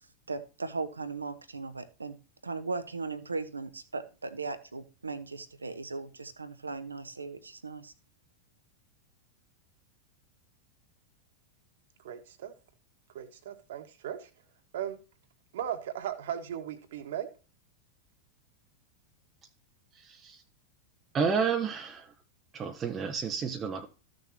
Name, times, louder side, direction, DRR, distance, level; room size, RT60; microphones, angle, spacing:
voice 1, 0.3-2.2 2.4-7.9, right 4 dB, 80° right, 1.0 m, -37 dB
voice 2, 12.0-12.5 13.1-14.3 14.7-15.0 15.5-17.3, right 10 dB, 55° right, 1.6 m, -37 dB
voice 3, 19.9-20.4 21.1-22.1 22.5-23.9, right 5 dB, 25° right, 0.9 m, -31 dB
14.0 x 6.7 x 2.9 m
figure-of-eight pair, 90°, 0 cm